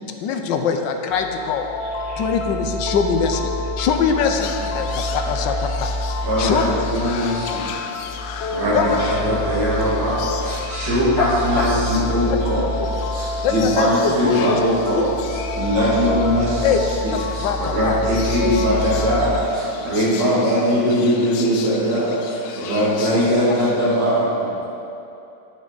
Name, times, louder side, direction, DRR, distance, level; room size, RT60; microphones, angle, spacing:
voice 1, 0.2-1.7 2.2-5.9 6.4-6.7 8.7-9.0 11.2-11.3 13.4-14.1 14.5-14.6 14.9-15.0 16.6-16.8 17.4-18.0, left 6 dB, 90° left, 5 dB, 1.4 m, -22 dB
sound 1, 1.1-19.4, left 2 dB, 55° left, 0.7 m, -27 dB
sound 2, 4.4-24.1, left 7 dB, 70° left, 1.0 m, -37 dB
voice 2, 6.2-7.7 8.4-24.6, equal, 80° right, -7 dB, 3.1 m, -21 dB
voice 3, 7.6-8.2 13.3-13.4 15.5-15.6 17.4-17.5 19.8-19.9 20.7-20.9 21.5-21.6 21.9-22.0 24.6-24.7, right 1 dB, 15° left, -7 dB, 1.8 m, -45 dB
9.8 x 9.5 x 4.0 m, 2.7 s
omnidirectional pair, 1.9 m